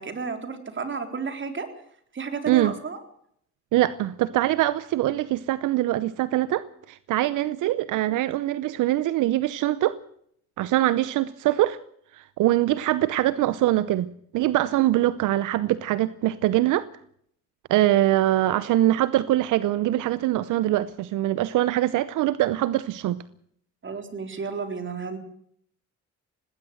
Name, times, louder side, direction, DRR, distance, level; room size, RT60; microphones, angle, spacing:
voice 1, 0.0-1.7 2.1-3.0 23.8-25.2, right 5 dB, 40° right, 4.2 m, -32 dB
voice 2, 3.7-10.0 10.6-11.8 12.1-14.1 14.3-16.9 17.7-23.2, right 14 dB, 85° right, 0.8 m, -23 dB
19.0 x 17.5 x 7.8 m
cardioid pair, 90°, 30 cm